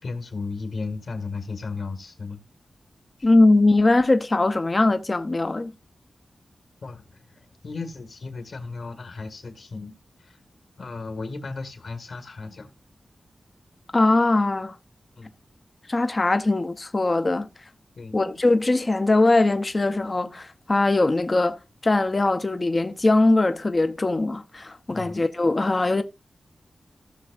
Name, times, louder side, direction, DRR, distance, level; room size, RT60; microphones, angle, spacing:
voice 1, 0.0-2.4 3.2-3.3 6.8-10.4 10.8-12.7 15.2-15.3 18.0-18.2 24.9-25.2, left 4 dB, 70° left, 1.8 m, -35 dB
voice 2, 3.2-5.7 13.9-14.7 15.9-17.5 18.1-21.6 21.8-26.0, left 2 dB, 35° left, 0.6 m, -21 dB
16.5 x 6.2 x 2.5 m
wide cardioid pair, 95°, 0 cm